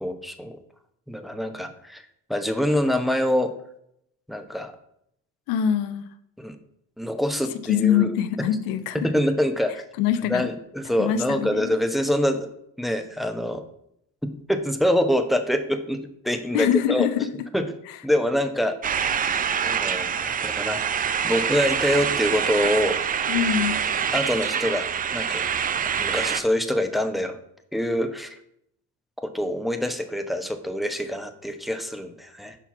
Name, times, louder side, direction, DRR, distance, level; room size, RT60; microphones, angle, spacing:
voice 1, 0.0-0.6 1.1-2.0 2.3-3.5 4.3-4.7 6.4-6.6 7.0-8.1 8.9-9.8 10.3-12.5 12.8-13.6 14.2-17.1 17.5-17.7 18.0-18.8 19.7-20.8 21.2-23.0 24.1-25.5 26.0-27.4 27.7-28.4 29.2-32.6, equal, ahead, 7 dB, 0.8 m, -25 dB
voice 2, 5.5-6.1 7.7-9.1 10.0-10.5 11.0-11.7 16.5-17.3 23.3-23.8, left 9 dB, 65° left, 11 dB, 0.7 m, -23 dB
sound 1, 18.8-26.4, right 7 dB, 25° right, 0.4 m, -25 dB
5.6 x 4.6 x 5.8 m, 0.74 s
hypercardioid pair, 60°, 38 cm